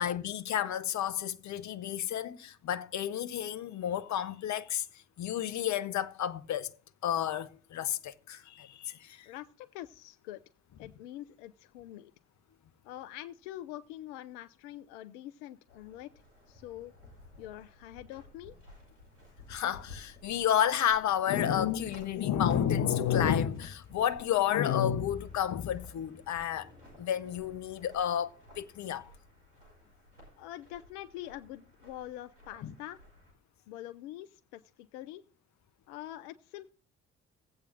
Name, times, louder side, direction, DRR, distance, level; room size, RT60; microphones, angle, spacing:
voice 1, 0.0-4.9 5.2-6.7 7.0-9.3 19.5-26.7 27.0-29.1 32.6-32.7, left 9 dB, 55° left, 0.8 m, -31 dB
voice 2, 9.2-10.4 10.8-12.1 12.8-16.1 16.5-16.9 17.4-18.6 30.4-33.0 33.7-35.2 35.9-36.7, left 13 dB, 80° left, 0.5 m, -45 dB
sound 1, 15.7-33.3, left 2 dB, 90° right, 3.7 m, -55 dB
16.0 x 8.4 x 2.5 m
hypercardioid pair, 45°, 35 cm